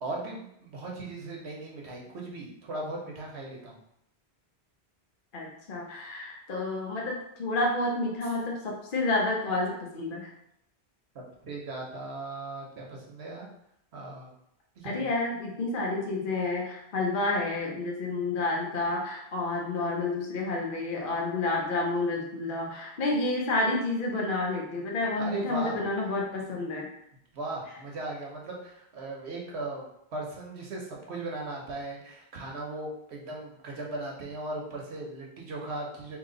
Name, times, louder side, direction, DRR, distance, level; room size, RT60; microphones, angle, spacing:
voice 1, 0.0-3.8 11.1-13.5 13.9-14.3 14.7-15.1 25.2-25.9 27.3-29.8 30.1-36.2, right 2 dB, 85° right, -1 dB, 1.1 m, -38 dB
voice 2, 5.3-10.3 14.8-26.9, left 2 dB, 55° left, -2 dB, 0.9 m, -30 dB
3.0 x 2.9 x 3.8 m, 0.77 s
omnidirectional pair, 1.1 m